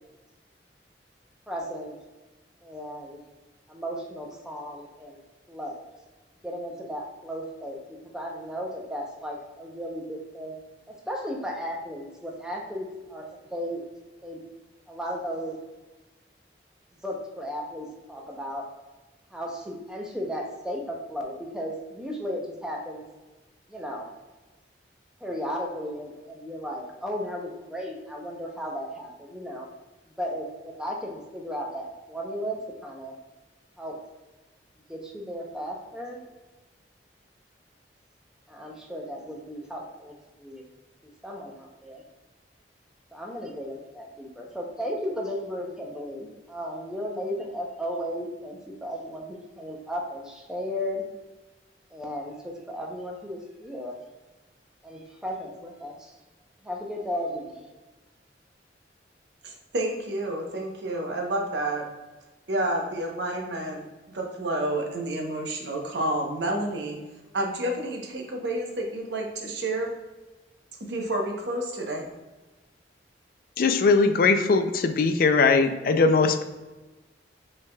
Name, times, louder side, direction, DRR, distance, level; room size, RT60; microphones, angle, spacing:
voice 1, 1.5-1.9 2.6-3.2 3.7-5.2 5.5-5.8 6.4-7.8 8.1-10.5 10.9-13.8 14.2-14.4 14.9-15.6 17.0-18.7 19.3-23.0 23.7-24.1 25.2-29.7 30.2-33.1 33.8-34.0 34.9-36.2 38.5-40.6 41.2-42.0 43.1-51.1 51.9-54.0 54.8-56.1 56.6-57.6, equal, 5° right, -1 dB, 0.6 m, -35 dB
voice 2, 59.4-61.9 62.5-63.8 64.1-67.0 67.3-69.9 70.9-72.1, right 1 dB, 80° right, 1 dB, 0.8 m, -29 dB
voice 3, 73.6-76.4, left 4 dB, 55° left, 8 dB, 0.3 m, -20 dB
5.4 x 3.4 x 2.2 m, 1.2 s
head